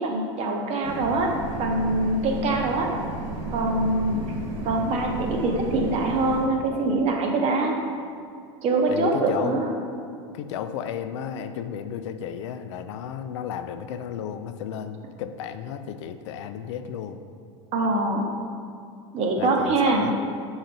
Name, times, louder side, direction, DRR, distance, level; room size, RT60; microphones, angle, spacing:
voice 1, 0.0-1.3 1.6-2.9 3.5-4.2 4.6-7.8 8.6-9.7 17.7-18.3 19.1-20.1, right 2 dB, 45° right, 1 dB, 0.9 m, -24 dB
sound 1, 0.8-6.5, right 2 dB, 70° right, 0.9 m, -33 dB
voice 2, 8.9-9.6 10.3-17.2 19.4-20.1, left 8 dB, 75° left, 9 dB, 0.4 m, -33 dB
6.4 x 4.0 x 4.0 m, 2.3 s
hypercardioid pair, 105°, 15 cm